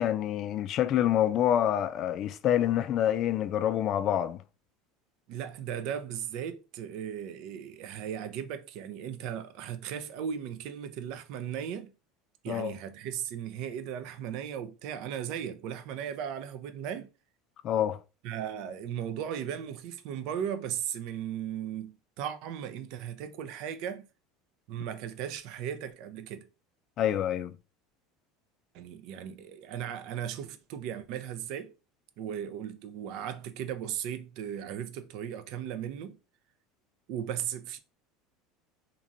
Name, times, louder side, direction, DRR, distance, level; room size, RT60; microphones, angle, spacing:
voice 1, 0.0-4.4 12.5-12.7 17.6-18.0 27.0-27.5, left 11 dB, 50° left, 0.3 m, -27 dB
voice 2, 5.3-11.9 12.4-17.1 18.2-24.1 24.7-26.5 28.7-31.7 32.2-36.2 37.1-37.8, right 9 dB, 65° right, 0.5 m, -37 dB
2.9 x 2.6 x 2.5 m
hypercardioid pair, 90°, 0 cm